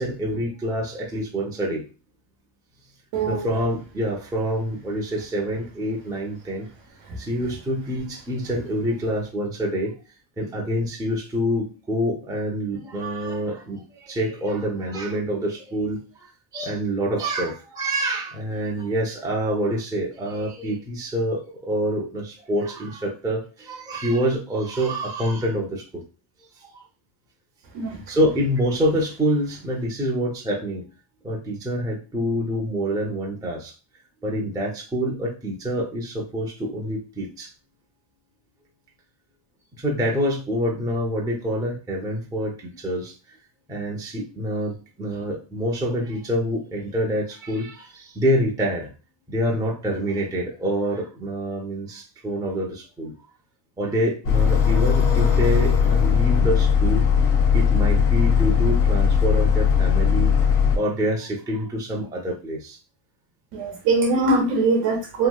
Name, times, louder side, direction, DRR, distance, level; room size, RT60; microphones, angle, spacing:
voice 1, 0.0-1.9 3.3-6.7 7.2-9.9 10.4-26.0 26.6-26.8 28.1-30.8 31.2-33.7 34.2-37.5 39.8-43.4 43.7-48.9 49.3-53.2 53.8-57.1 57.5-60.3 60.7-62.8, equal, 10° right, -2 dB, 0.5 m, -26 dB
voice 2, 3.1-3.5 27.7-28.0 63.5-65.3, right 3 dB, 85° right, 0 dB, 0.9 m, -22 dB
sound 1, 54.2-60.8, left 7 dB, 85° left, 1.4 m, -19 dB
3.0 x 2.6 x 2.2 m, 0.34 s
cardioid pair, 110°, 49 cm